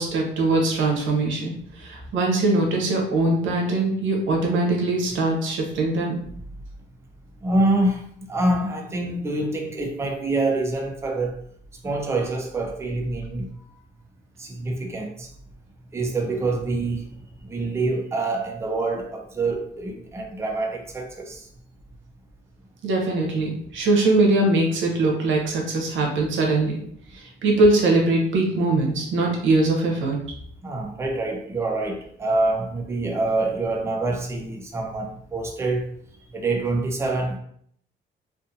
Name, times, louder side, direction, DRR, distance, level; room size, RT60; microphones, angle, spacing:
voice 1, 0.0-6.2 22.8-26.8 27.1-30.2, right 2 dB, 75° right, 0.8 m, -22 dB
voice 2, 7.4-11.4 11.8-13.5 14.4-15.3 15.9-21.5 30.6-35.9 36.3-37.4, right 2 dB, 15° right, 0.5 m, -26 dB
2.5 x 2.4 x 2.7 m
cardioid pair, 90°, 20 cm